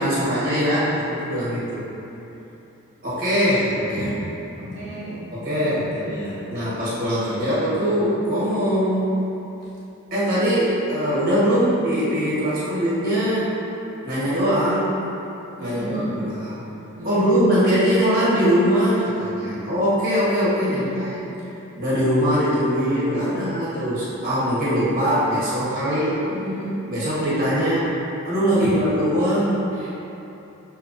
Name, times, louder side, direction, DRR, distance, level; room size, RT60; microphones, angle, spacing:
voice 1, 0.0-1.9 3.0-4.1 5.3-9.2 10.1-13.5 14.0-15.0 15.6-16.6 17.0-21.1 21.8-26.2 26.9-28.0 28.3-29.7, equal, 45° right, -10 dB, 1.3 m, -22 dB
voice 2, 4.6-5.2 5.5-5.9 11.4-11.7 15.6-16.2 17.0-17.4 20.6-21.1 23.1-23.5 26.2-26.7 28.5-28.7 29.7-29.9, equal, 60° right, -12 dB, 0.8 m, -33 dB
6.4 x 3.0 x 2.6 m, 3.0 s
head